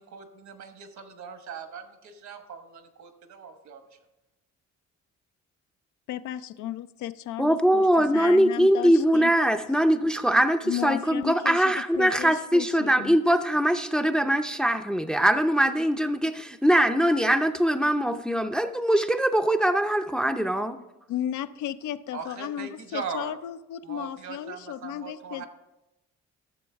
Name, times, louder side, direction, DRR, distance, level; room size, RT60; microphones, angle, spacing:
voice 1, 0.0-3.8 22.1-23.3 23.8-25.5, right 6 dB, 70° right, 7 dB, 1.3 m, -40 dB
voice 2, 6.1-9.3 10.6-13.2 21.1-25.5, left 11 dB, 75° left, 12 dB, 0.5 m, -34 dB
voice 3, 7.4-20.8, right 1 dB, 5° left, 8 dB, 0.5 m, -22 dB
12.5 x 7.0 x 3.5 m, 0.96 s
cardioid pair, 90°, 30 cm